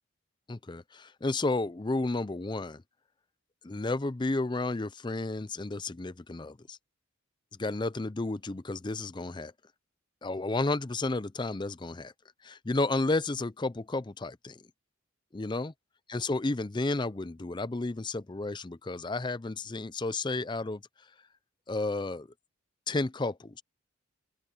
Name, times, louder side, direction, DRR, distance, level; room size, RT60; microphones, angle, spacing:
voice 1, 0.5-2.8 3.6-6.8 7.6-9.5 10.2-12.1 12.4-14.6 15.3-15.7 16.1-20.8 21.7-22.3 22.9-23.6, left 2 dB, 20° left, 0.5 m, -32 dB
open air
head